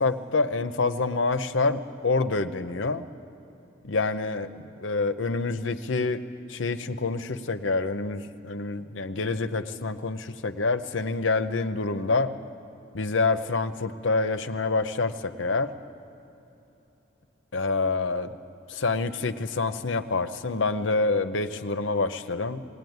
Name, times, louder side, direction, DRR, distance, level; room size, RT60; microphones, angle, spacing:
voice 1, 0.0-3.0 3.8-6.2 6.5-12.3 12.9-15.7 17.5-18.4 18.7-22.6, left 3 dB, 75° left, 10 dB, 0.8 m, -27 dB
19.5 x 18.5 x 9.4 m, 2.9 s
head